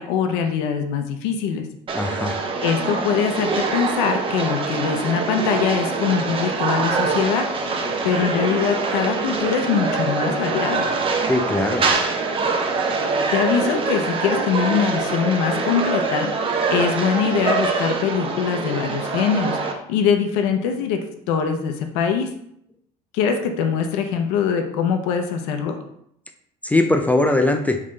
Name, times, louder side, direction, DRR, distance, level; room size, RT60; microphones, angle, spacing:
voice 1, 0.0-1.7 2.6-7.5 8.0-10.8 13.0-22.3 23.1-25.8, left 7 dB, 85° left, 5 dB, 0.6 m, -23 dB
voice 2, 1.9-2.4 11.3-11.8 26.6-27.8, left 2 dB, 10° left, 5 dB, 0.4 m, -20 dB
sound 1, 1.9-19.7, right 4 dB, 35° right, 0.7 m, -24 dB
3.7 x 3.7 x 3.2 m, 0.72 s
supercardioid pair, 105°, 17 cm